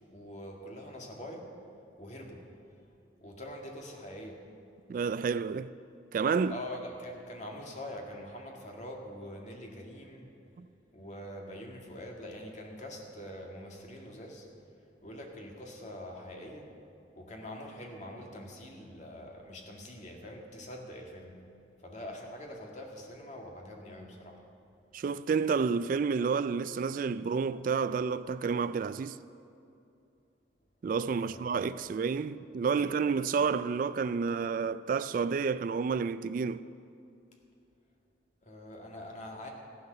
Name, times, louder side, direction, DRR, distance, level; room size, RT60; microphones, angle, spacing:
voice 1, 0.1-1.5 2.0-2.4 3.2-4.4 6.5-10.3 10.9-14.5 15.0-16.7 17.2-21.3 21.8-24.4 31.1-32.0 32.8-33.0 38.4-39.5, left 1 dB, 40° left, 2.0 m, -44 dB
voice 2, 4.9-5.7 6.1-6.6 10.6-10.7 24.9-29.2 30.8-36.6, right 5 dB, 50° right, 0.3 m, -30 dB
14.5 x 10.5 x 6.7 m
head